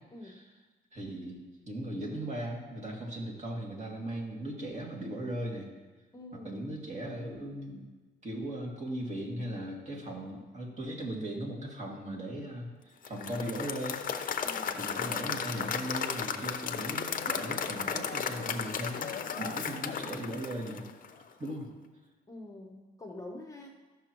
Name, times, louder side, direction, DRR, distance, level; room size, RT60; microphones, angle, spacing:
voice 1, 0.1-0.5 6.1-6.7 14.4-14.9 22.3-23.7, left 1 dB, 15° left, 1 dB, 0.9 m, -46 dB
voice 2, 0.9-1.4 1.7-5.7 6.3-7.8 8.2-14.0 14.4-20.8 21.4-21.7, right 1 dB, 35° right, -2 dB, 2.4 m, -38 dB
Applause / Crowd, 13.0-21.2, left 7 dB, 45° left, 0.6 m, -35 dB
14.5 x 6.1 x 3.0 m, 1.3 s
cardioid pair, 90°, 20 cm